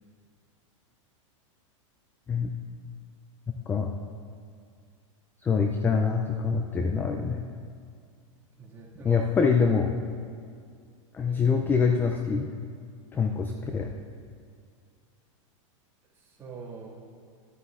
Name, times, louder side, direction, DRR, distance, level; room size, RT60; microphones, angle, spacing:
voice 1, 5.4-7.5 9.0-9.9 11.1-12.5 13.1-13.9, left 5 dB, 10° left, 4 dB, 0.3 m, -25 dB
voice 2, 8.6-9.3 11.2-11.6 16.2-16.9, right 5 dB, 15° right, -6 dB, 1.9 m, -43 dB
12.0 x 9.6 x 2.4 m, 2.2 s
supercardioid pair, 140°, 17 cm